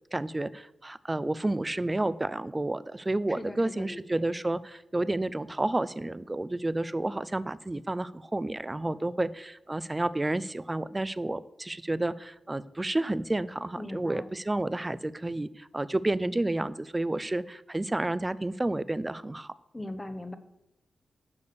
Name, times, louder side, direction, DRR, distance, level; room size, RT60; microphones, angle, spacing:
voice 1, 0.1-19.5, right 2 dB, 20° right, 16 dB, 0.5 m, -30 dB
voice 2, 3.3-4.2 13.8-14.3 19.7-20.4, left 1 dB, 15° left, 11 dB, 0.9 m, -39 dB
8.6 x 6.3 x 6.8 m, 0.87 s
cardioid pair, 90°, 0 cm